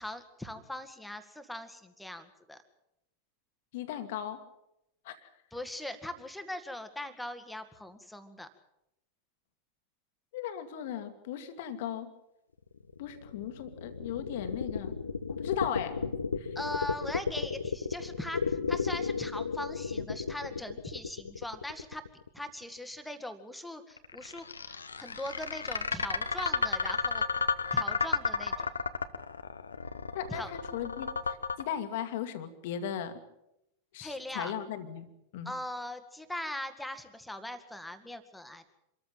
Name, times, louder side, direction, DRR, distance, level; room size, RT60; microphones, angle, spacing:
voice 1, 0.0-2.6 5.5-8.5 16.6-22.0 22.3-28.7 30.3-30.5 34.0-34.5 35.5-38.7, left 1 dB, 5° left, 9 dB, 2.1 m, -40 dB
voice 2, 3.7-4.4 5.1-5.3 10.3-12.1 13.0-15.0 15.3-16.0 16.4-16.6 30.1-33.2 33.9-35.5, left 9 dB, 50° left, 9 dB, 2.0 m, -37 dB
sound 1, 12.7-22.6 24.0-31.6, left 5 dB, 75° left, 1.1 m, -33 dB
26.0 x 14.0 x 9.0 m, 0.84 s
figure-of-eight pair, 90°, 0 cm